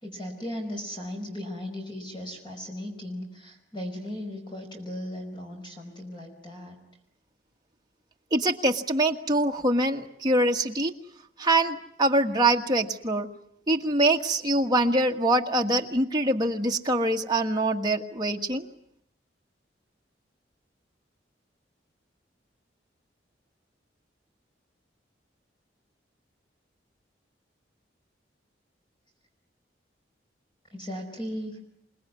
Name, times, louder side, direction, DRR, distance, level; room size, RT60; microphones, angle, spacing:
voice 1, 0.0-6.7 30.7-31.6, left 1 dB, 25° left, 2 dB, 5.0 m, -37 dB
voice 2, 8.3-10.9 11.4-13.3 13.7-18.7, right 1 dB, 20° right, 2 dB, 1.5 m, -24 dB
27.5 x 19.0 x 9.7 m, 0.75 s
head